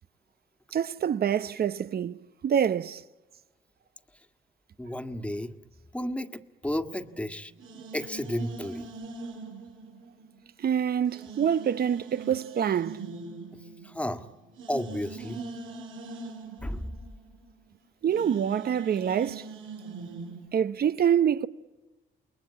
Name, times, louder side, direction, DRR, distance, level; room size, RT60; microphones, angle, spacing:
voice 1, 0.7-3.0 10.6-13.0 18.0-19.5 20.5-21.5, right 8 dB, 50° right, 0.9 m, -26 dB
voice 2, 4.8-5.5 5.9-7.5 7.9-8.9 13.8-14.3 14.7-15.4 16.6-16.9, left 1 dB, 5° left, 1.7 m, -32 dB
sound 1, 6.9-10.6 11.1-20.5, right 4 dB, 85° right, 6.3 m, -42 dB
29.0 x 22.0 x 8.6 m
cardioid pair, 90°, 20 cm